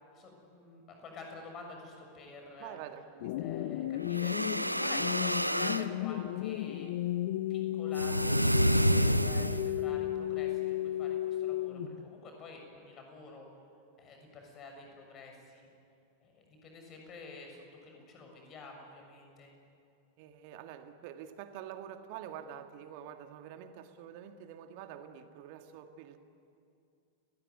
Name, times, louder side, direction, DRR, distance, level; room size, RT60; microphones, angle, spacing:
voice 1, 0.1-2.8 3.4-4.3 4.7-6.9 7.5-13.5 14.0-15.7 16.2-19.5, left 3 dB, 30° left, 3 dB, 6.9 m, -49 dB
voice 2, 2.6-3.3 20.2-26.2, right 9 dB, 45° right, 8 dB, 1.9 m, -46 dB
sound 1, 3.2-12.2, left 14 dB, 50° left, 0.7 m, -34 dB
sound 2, 4.1-5.9 7.9-9.8, equal, 90° right, 0.7 m, -28 dB
30.0 x 19.5 x 9.6 m, 2.6 s
figure-of-eight pair, 90°, 0 cm